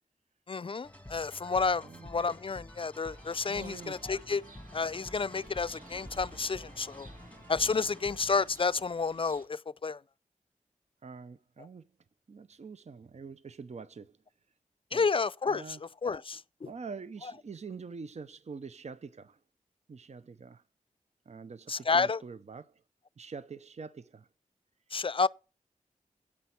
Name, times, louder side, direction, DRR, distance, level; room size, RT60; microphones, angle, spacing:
voice 1, 0.5-4.4 4.7-7.1 7.5-10.0 14.9-15.8 16.0-16.7 21.7-22.2 24.9-25.3, left 4 dB, 40° left, 0.4 m, -30 dB
sound 1, 0.8-8.8, left 1 dB, 10° left, 1.6 m, -50 dB
sound 2, 3.1-9.5, right 2 dB, 75° right, 2.2 m, -54 dB
voice 2, 3.5-4.0 11.0-11.9 12.3-14.2 14.9-15.1 15.5-15.9 16.6-19.4 19.9-20.6 21.3-22.8 23.2-24.3, right 5 dB, 55° right, 0.6 m, -45 dB
8.6 x 5.7 x 8.1 m
cardioid pair, 40°, 14 cm